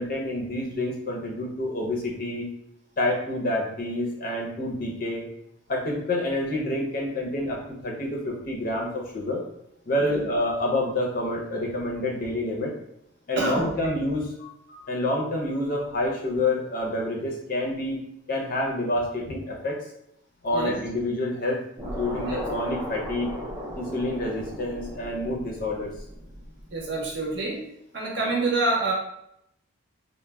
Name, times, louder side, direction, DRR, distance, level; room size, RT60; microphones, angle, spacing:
voice 1, 0.0-2.4 3.0-5.3 5.7-9.4 9.9-12.7 13.3-18.0 18.3-19.8 20.4-23.3 23.8-25.9, left 1 dB, 45° left, -1 dB, 0.5 m, -28 dB
voice 2, 13.4-13.9 20.5-20.8 22.3-22.4 26.7-27.6 27.9-28.9, right 3 dB, 55° right, -2 dB, 0.7 m, -27 dB
sound 1, 21.8-27.1, equal, 10° right, 0.4 m, -37 dB
3.2 x 2.1 x 2.2 m, 0.77 s
head